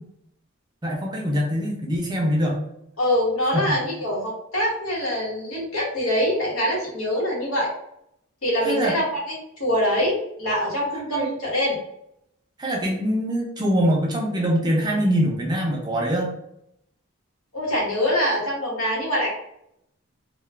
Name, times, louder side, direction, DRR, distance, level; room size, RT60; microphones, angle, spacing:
voice 1, 0.8-2.6 3.5-3.8 8.6-9.0 11.1-11.3 12.6-16.3, equal, 20° right, -1 dB, 0.5 m, -23 dB
voice 2, 3.0-7.7 8.4-9.0 9.6-11.8 17.5-19.3, equal, 85° left, -3 dB, 1.1 m, -24 dB
2.3 x 2.2 x 3.2 m, 0.76 s
head